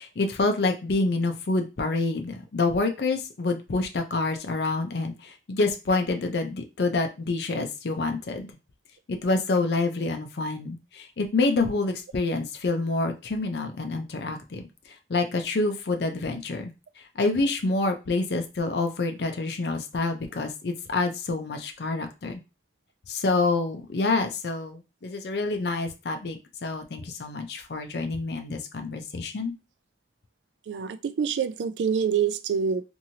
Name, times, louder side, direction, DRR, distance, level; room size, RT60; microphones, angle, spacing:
voice 1, 0.0-8.5 9.1-14.7 15.1-16.7 17.2-22.4 23.1-29.5, left 3 dB, 70° left, 0.5 m, -27 dB
voice 2, 30.7-32.8, right 7 dB, 90° right, 0.3 m, -26 dB
2.9 x 2.6 x 2.7 m
head